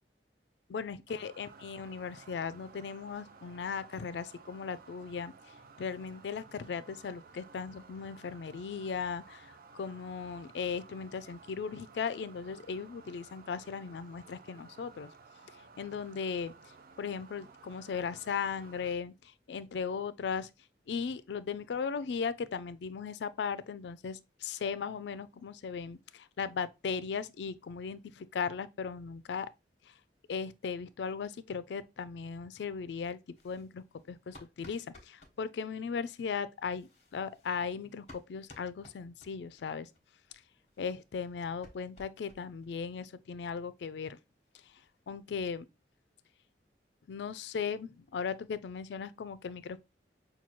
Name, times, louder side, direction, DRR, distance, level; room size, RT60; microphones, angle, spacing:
voice 1, 0.7-5.3 5.8-15.1 15.8-16.5 17.0-20.5 20.9-29.5 29.8-29.9 30.3-33.2 33.4-39.9 40.8-44.2 45.1-45.7 47.1-49.8, left 6 dB, 75° left, 0.4 m, -37 dB
sound 1, 1.1-19.0, right 4 dB, 55° right, 0.4 m, -55 dB
sound 2, 33.3-35.4 36.5-39.7 39.9-40.0 40.3-40.4 40.7-42.7 43.0-43.1 43.4-43.5 43.8-43.9 44.2-45.0, left 2 dB, 40° left, 1.0 m, -58 dB
5.7 x 2.3 x 3.0 m
head